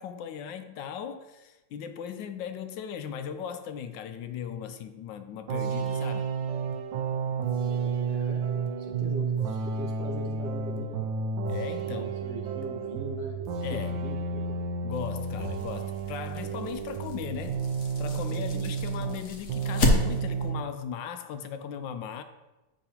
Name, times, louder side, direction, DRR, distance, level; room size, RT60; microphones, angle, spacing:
voice 1, 0.0-6.3 11.5-12.2 13.6-14.0 14.8-17.6 18.0-22.2, left 8 dB, 75° left, 1.2 m, -37 dB
sound 1, 5.5-19.2 19.5-20.7, right 5 dB, 75° right, 1.4 m, -31 dB
voice 2, 7.5-11.0 11.8-13.4 13.7-14.6 18.3-18.7, right 2 dB, 60° right, 0.6 m, -40 dB
sound 2, 14.9-20.5, left 2 dB, 55° left, 1.1 m, -32 dB
8.6 x 5.7 x 2.8 m
omnidirectional pair, 2.1 m